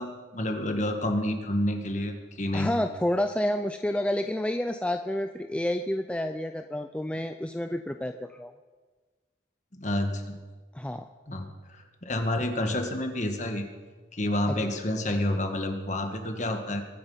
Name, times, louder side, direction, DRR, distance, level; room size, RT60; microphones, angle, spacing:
voice 1, 0.0-2.7 9.8-10.3 11.3-11.5 12.0-13.6 14.1-16.8, left 1 dB, 40° left, 5 dB, 1.6 m, -29 dB
voice 2, 2.5-8.5 10.7-11.1, left 1 dB, 5° left, 7 dB, 0.4 m, -29 dB
22.5 x 9.0 x 5.7 m, 1.3 s
head